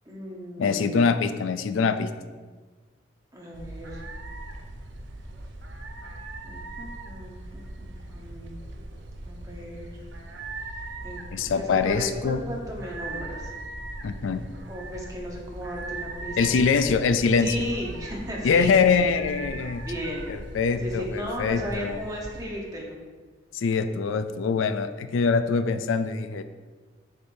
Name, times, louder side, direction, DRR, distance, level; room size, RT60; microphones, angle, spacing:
voice 1, 0.1-1.0 1.5-1.6 3.3-4.0 6.4-8.6 9.2-10.0 11.0-11.2 11.5-13.5 14.7-16.6 17.4-18.7 19.0-19.1 19.8-20.3 20.8-23.0, equal, 20° right, -2 dB, 1.0 m, -35 dB
voice 2, 0.6-2.1 11.3-12.4 14.0-14.5 16.4-17.7 18.4-19.8 20.3-22.0 23.5-26.4, left 5 dB, 90° left, 11 dB, 0.4 m, -24 dB
sound 1, 3.5-22.4, right 2 dB, 75° right, 0.6 m, -39 dB
6.4 x 6.1 x 2.6 m, 1.4 s
head